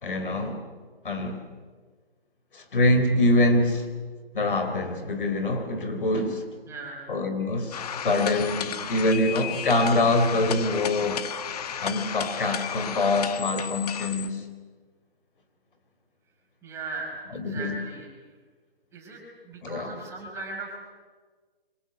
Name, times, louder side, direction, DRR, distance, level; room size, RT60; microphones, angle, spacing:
voice 1, 0.0-0.6 1.0-1.4 2.5-3.9 4.3-6.4 7.1-11.3 11.8-14.4 17.3-17.7 19.6-20.0, left 2 dB, 60° left, 7 dB, 4.5 m, -24 dB
voice 2, 6.7-7.1 16.6-18.1 18.9-20.8, right 3 dB, 10° right, -2 dB, 5.5 m, -38 dB
sound 1, 7.7-14.3, left 8 dB, 40° left, 1.4 m, -33 dB
26.5 x 25.5 x 8.4 m, 1.5 s
figure-of-eight pair, 150°, 30 cm